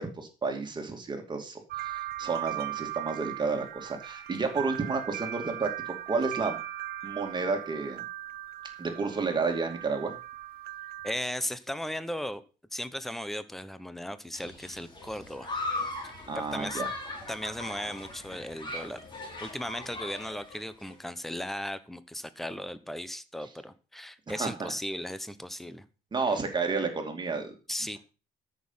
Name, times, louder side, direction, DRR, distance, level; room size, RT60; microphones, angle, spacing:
voice 1, 0.0-6.6 7.0-8.0 8.8-10.2 16.3-16.9 24.3-24.5 26.1-27.5, right 4 dB, 25° right, 4 dB, 2.6 m, -31 dB
sound 1, 1.7-11.1, right 13 dB, 65° right, 1.0 m, -39 dB
voice 2, 11.0-12.4 12.7-15.5 16.3-16.8 17.3-19.0 19.4-25.8 27.7-28.0, left 1 dB, ahead, 13 dB, 1.0 m, -36 dB
Human group actions, 14.3-20.9, left 2 dB, 25° left, 4.3 m, -39 dB
13.5 x 6.6 x 5.7 m, 0.34 s
cardioid pair, 110°, 17 cm